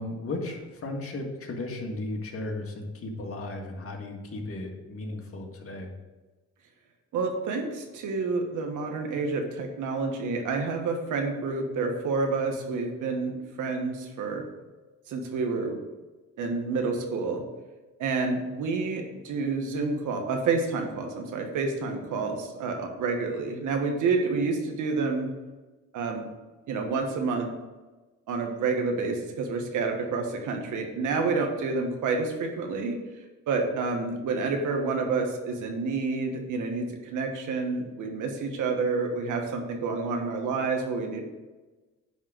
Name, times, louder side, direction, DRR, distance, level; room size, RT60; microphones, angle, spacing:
voice 1, 0.0-5.9, left 2 dB, 50° left, 1 dB, 1.9 m, -35 dB
voice 2, 7.1-14.5 15.1-15.8 16.4-17.4 18.0-25.3 25.9-26.2 26.7-27.5 28.3-33.0 33.5-41.2, right 4 dB, 80° right, 3 dB, 1.5 m, -29 dB
10.0 x 3.8 x 6.1 m, 1.2 s
cardioid pair, 90°, 30 cm